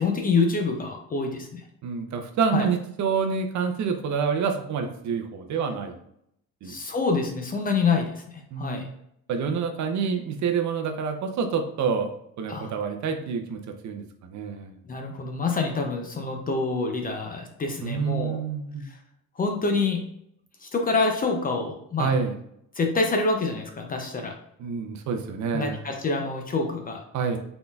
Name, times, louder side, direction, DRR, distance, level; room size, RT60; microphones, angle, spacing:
voice 1, 0.0-1.7 2.5-2.6 6.6-8.9 12.5-12.7 14.9-18.4 18.8-19.0 19.4-20.0 20.6-22.1 22.7-24.3 25.5-27.0, left 4 dB, 25° left, 3 dB, 0.4 m, -26 dB
voice 2, 1.8-6.0 6.6-6.7 8.5-8.8 9.3-12.1 12.4-14.7 17.8-18.8 22.0-22.3 24.6-25.8 27.1-27.4, right 6 dB, 55° right, 5 dB, 0.6 m, -27 dB
4.0 x 3.9 x 2.3 m, 0.73 s
cardioid pair, 170°, 34 cm